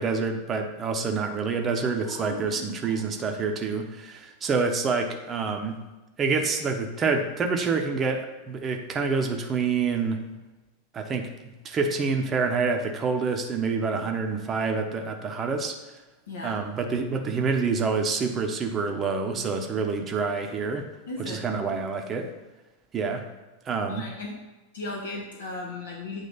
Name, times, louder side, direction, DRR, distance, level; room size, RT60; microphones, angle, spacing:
voice 1, 0.0-5.8 6.2-10.2 10.9-11.3 11.6-15.8 16.4-20.9 21.3-22.3 22.9-23.3 23.7-24.1, right 4 dB, 25° right, 4 dB, 0.9 m, -27 dB
voice 2, 2.0-3.2 14.0-14.2 16.3-16.6 21.1-21.8 23.9-24.4 24.7-26.3, left 2 dB, 65° left, -2 dB, 1.3 m, -37 dB
8.5 x 3.3 x 5.6 m, 1.1 s
figure-of-eight pair, 90°, 0 cm